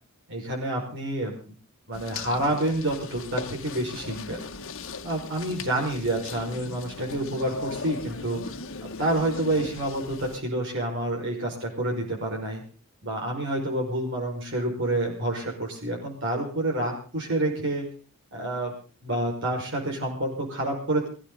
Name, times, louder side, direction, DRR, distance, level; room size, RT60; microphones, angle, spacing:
voice 1, 0.3-1.3 1.9-4.4 5.0-12.6 13.0-17.8 18.3-18.7 19.0-21.1, right 1 dB, 55° right, -1 dB, 5.7 m, -28 dB
sound 1, 1.9-10.4, left 4 dB, 60° left, 1.6 m, -38 dB
23.5 x 14.5 x 4.1 m, 0.38 s
head